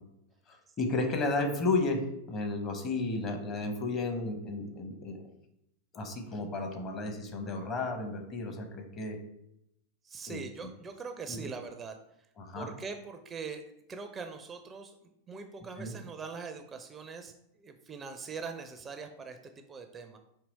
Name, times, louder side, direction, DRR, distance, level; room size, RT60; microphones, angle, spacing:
voice 1, 0.5-5.2 5.9-9.2 10.3-10.4 11.3-11.5 12.4-12.7 15.8-15.9, left 3 dB, 30° left, 4 dB, 0.8 m, -33 dB
voice 2, 10.0-12.3 12.5-20.2, right 5 dB, 20° right, 6 dB, 0.4 m, -42 dB
4.6 x 2.9 x 4.0 m, 0.79 s
figure-of-eight pair, 90°, 0 cm